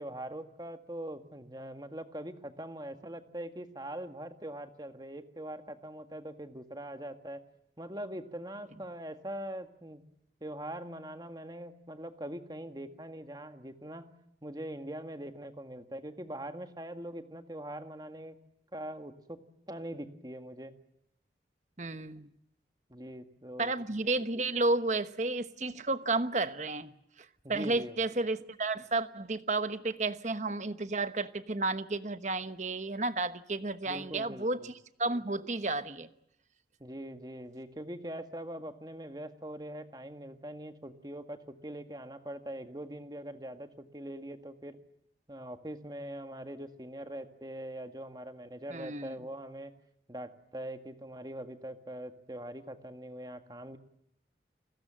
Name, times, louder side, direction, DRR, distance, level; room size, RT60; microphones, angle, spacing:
voice 1, 0.0-7.4 7.8-10.0 10.4-14.1 14.4-18.4 18.7-19.4 19.7-20.8 22.9-23.7 27.4-27.9 33.9-34.7 36.8-44.8 45.3-49.7 50.1-53.8, right 1 dB, 25° right, 1.8 m, -42 dB
voice 2, 21.8-22.3 23.6-34.7 35.0-36.1 48.7-49.2, right 3 dB, 40° right, 1.1 m, -32 dB
30.0 x 21.0 x 7.6 m
head